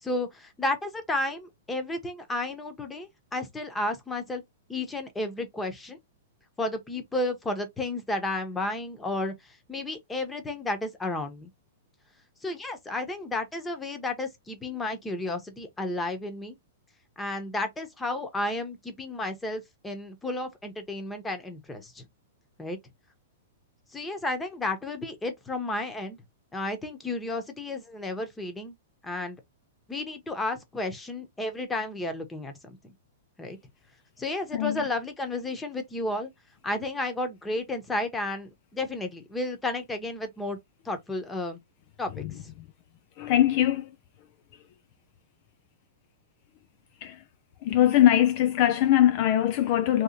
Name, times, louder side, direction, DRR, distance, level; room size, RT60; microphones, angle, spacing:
voice 1, 0.0-4.4 4.7-6.0 6.6-11.5 12.4-16.5 17.2-22.1 22.6-22.8 23.9-26.2 26.5-28.7 29.0-29.4 29.9-32.9 33.4-33.6 34.2-36.3 36.6-40.6 40.8-41.6 42.0-42.5, left 2 dB, 10° left, 1.0 m, -32 dB
voice 2, 34.5-34.8 42.2-42.3 43.2-43.9 47.0-47.2 47.6-50.0, left 12 dB, 45° left, 0.4 m, -22 dB
3.2 x 2.9 x 2.5 m
hypercardioid pair, 110°, 0 cm